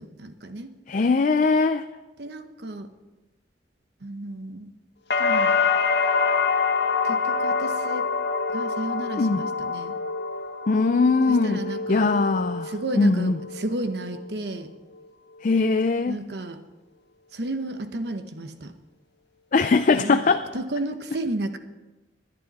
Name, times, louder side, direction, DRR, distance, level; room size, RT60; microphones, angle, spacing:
voice 1, 0.0-0.7 2.2-2.9 4.0-4.7 5.2-5.6 7.0-8.1 8.5-9.9 11.3-12.1 12.7-14.7 16.0-16.6 17.3-18.7 19.9-21.6, right 1 dB, 70° right, 8 dB, 1.0 m, -32 dB
voice 2, 0.9-1.8 9.2-9.4 10.7-11.6 11.9-13.4 15.4-16.2 19.5-20.5, left 3 dB, 45° left, 9 dB, 0.4 m, -21 dB
sound 1, 5.1-13.0 13.4-14.0, left 5 dB, 80° left, 1.5 m, -25 dB
21.0 x 11.0 x 4.1 m, 1.1 s
head